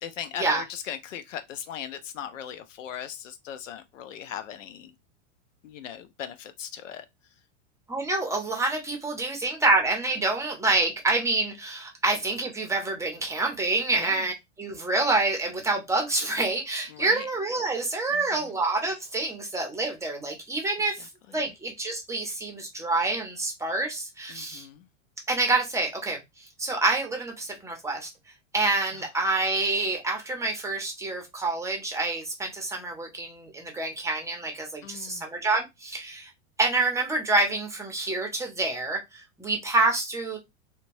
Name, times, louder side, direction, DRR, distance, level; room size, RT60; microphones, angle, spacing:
voice 1, 0.0-4.9 5.6-7.1 14.0-14.3 16.9-17.3 18.1-18.6 21.3-21.5 24.3-24.9 28.9-29.1 34.8-35.2, left 9 dB, 80° left, 0.7 m, -39 dB
voice 2, 7.9-21.1 21.3-24.7 25.3-28.1 28.5-36.3 36.6-40.4, right 2 dB, 10° right, 0.7 m, -27 dB
2.8 x 2.2 x 2.6 m
hypercardioid pair, 115°, 37 cm